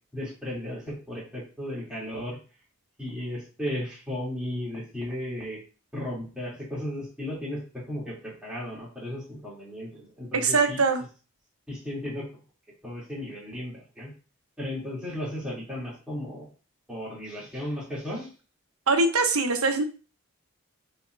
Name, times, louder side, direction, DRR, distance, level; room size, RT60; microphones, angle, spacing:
voice 1, 0.1-2.4 3.0-5.6 5.9-10.8 11.7-12.3 12.8-14.1 14.6-16.5 16.9-18.3, left 1 dB, 5° right, -7 dB, 3.0 m, -35 dB
voice 2, 10.3-11.0 18.9-19.8, right 3 dB, 75° right, 6 dB, 1.1 m, -22 dB
8.3 x 4.5 x 2.7 m, 0.35 s
head